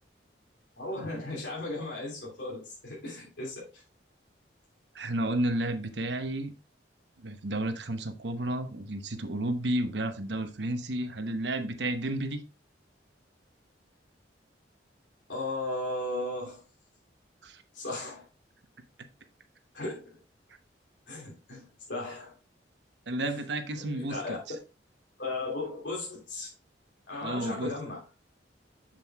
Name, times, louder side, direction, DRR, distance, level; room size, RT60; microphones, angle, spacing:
voice 1, 0.8-3.8 15.3-16.6 17.7-18.2 19.7-20.2 21.1-22.3 23.2-23.4 23.8-24.4 25.2-26.5 27.1-28.0, left 2 dB, 85° left, 2.9 m, -36 dB
voice 2, 4.9-6.5 7.2-12.4 17.4-17.6 23.1-24.2 27.2-27.7, right 1 dB, 70° right, 0.9 m, -31 dB
7.7 x 7.5 x 2.4 m
head